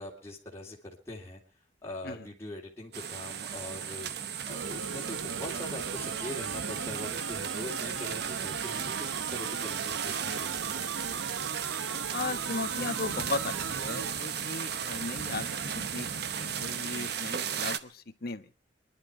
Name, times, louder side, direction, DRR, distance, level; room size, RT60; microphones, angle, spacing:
voice 1, 0.0-1.4 1.8-4.1 4.5-10.9, left 1 dB, 15° left, -3 dB, 3.1 m, -42 dB
sound 1, 2.9-17.8, right 8 dB, 60° right, 0.9 m, -35 dB
sound 2, 4.5-14.1, right 5 dB, 90° right, 0.7 m, -39 dB
voice 2, 12.1-18.5, left 3 dB, 55° left, 10 dB, 1.0 m, -37 dB
25.5 x 11.0 x 4.7 m, 0.38 s
head